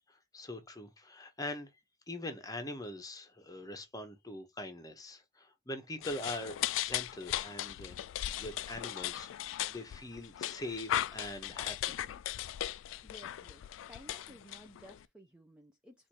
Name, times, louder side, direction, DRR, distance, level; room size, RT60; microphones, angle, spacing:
voice 1, 0.1-1.7 2.1-8.0 8.4-12.0, left 1 dB, 20° left, 0.8 m, -43 dB
sound 1, 6.0-15.0, left 12 dB, 80° left, 0.3 m, -38 dB
voice 2, 13.0-13.6 13.9-16.1, equal, 5° right, 0.5 m, -56 dB
4.2 x 2.5 x 4.5 m
head